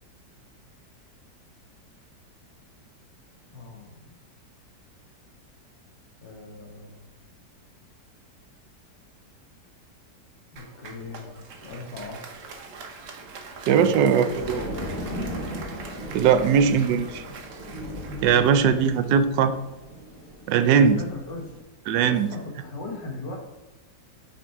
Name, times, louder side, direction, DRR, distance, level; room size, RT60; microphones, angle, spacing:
voice 1, 3.5-4.1 6.2-7.0 10.5-12.2 13.6-14.4 20.7-21.5 22.0-23.4, left 3 dB, 85° left, 1 dB, 2.1 m, -38 dB
Applause, 10.6-19.9, right 4 dB, 55° right, 1.1 m, -43 dB
sound 1, 10.8-11.1 12.0-12.1 12.4-12.5 14.1-21.6, equal, 30° left, 2.4 m, -37 dB
voice 2, 13.7-14.6 16.1-17.2 18.2-19.5 20.5-21.0 21.9-22.3, right 7 dB, 80° right, 10 dB, 1.2 m, -19 dB
5.9 x 5.2 x 4.6 m, 1.0 s
omnidirectional pair, 1.9 m